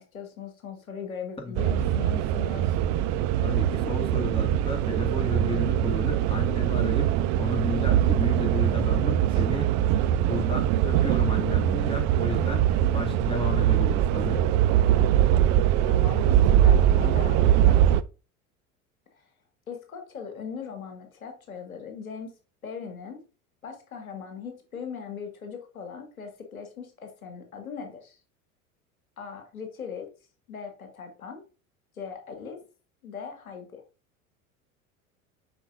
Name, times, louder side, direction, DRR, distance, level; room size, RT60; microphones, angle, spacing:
voice 1, 0.0-2.8 15.9-17.8 19.1-19.2 19.7-22.4 22.6-23.2 23.6-28.2 29.2-30.1 30.5-31.4 32.0-32.6 33.0-33.8, left 6 dB, 75° left, 1.8 m, -39 dB
sound 1, 1.6-18.0, right 11 dB, 40° right, 0.5 m, -22 dB
voice 2, 3.4-7.1 7.4-9.7 10.2-14.5, left 3 dB, 10° left, 1.9 m, -32 dB
7.0 x 5.4 x 2.5 m
figure-of-eight pair, 75°, 42 cm